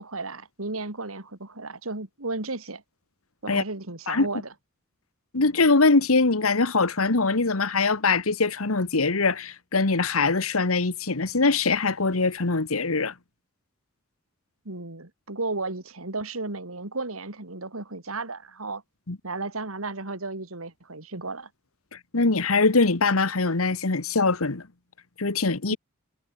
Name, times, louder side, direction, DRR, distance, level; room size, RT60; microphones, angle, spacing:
voice 1, 0.0-2.8 3.4-4.5 14.6-18.8 19.2-21.5, right 3 dB, 90° right, 2.9 m, -34 dB
voice 2, 5.3-13.1 19.1-19.2 22.1-24.6 25.2-25.8, left 3 dB, 90° left, 1.5 m, -22 dB
head